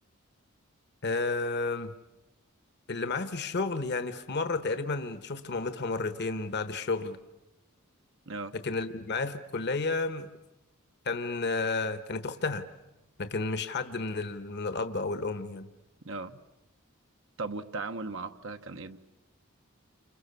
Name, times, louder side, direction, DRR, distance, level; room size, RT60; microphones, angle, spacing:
voice 1, 1.0-1.9 2.9-7.2 8.5-10.3 11.0-12.6 13.2-15.7, left 3 dB, 55° left, 10 dB, 1.2 m, -31 dB
voice 2, 16.0-16.4 17.4-19.0, right 3 dB, 65° right, 8 dB, 1.1 m, -37 dB
29.5 x 26.0 x 6.9 m, 0.98 s
head